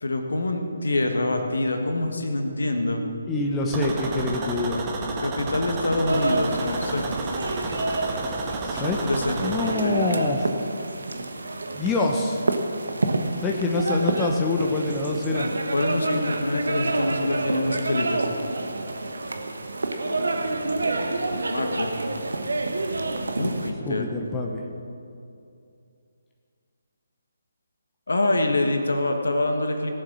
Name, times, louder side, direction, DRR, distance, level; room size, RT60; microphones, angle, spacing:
voice 1, 0.0-3.0 5.2-7.1 8.7-9.4 9.8-9.9 15.7-18.3 20.0-21.1 21.5-21.9 23.4-24.1 28.1-29.9, left 2 dB, 65° left, 4 dB, 1.6 m, -26 dB
voice 2, 3.3-4.9 8.6-9.0 9.4-10.5 11.7-12.4 13.4-15.5 23.8-24.6, left 2 dB, 10° left, 0 dB, 1.0 m, -25 dB
sound 1, 3.7-9.7, right 2 dB, 20° right, 1.5 m, -31 dB
sound 2, 6.1-23.7, right 2 dB, 65° right, 1.2 m, -28 dB
18.0 x 7.7 x 6.2 m, 2.5 s
figure-of-eight pair, 145°, 0 cm